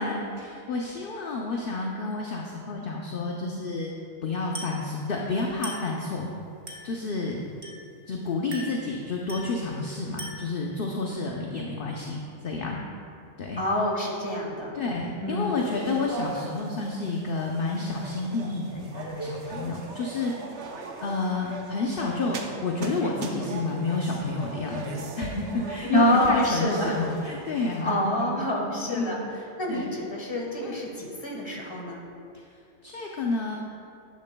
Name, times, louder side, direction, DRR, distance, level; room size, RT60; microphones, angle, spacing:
voice 1, 0.0-3.9 4.2-6.3 6.8-7.5 8.1-12.2 12.4-12.8 13.4-13.6 14.7-20.3 21.0-29.3 29.7-29.9 30.6-30.8 32.8-33.6, left 3 dB, 50° left, -1 dB, 0.7 m, -30 dB
Glass, 4.5-4.9 5.6-6.0 6.7-7.0 7.6-8.0 8.5-8.9 9.3-9.6 10.2-10.6, right 1 dB, 35° right, 1.4 m, -40 dB
voice 2, 13.6-14.7 15.2-15.6 25.9-27.0 27.8-29.2 29.6-32.0, equal, 20° left, -2 dB, 1.4 m, -26 dB
sound 1, 15.6-27.8, right 3 dB, 55° right, 1.0 m, -39 dB
10.5 x 10.5 x 2.2 m, 2.5 s
omnidirectional pair, 1.5 m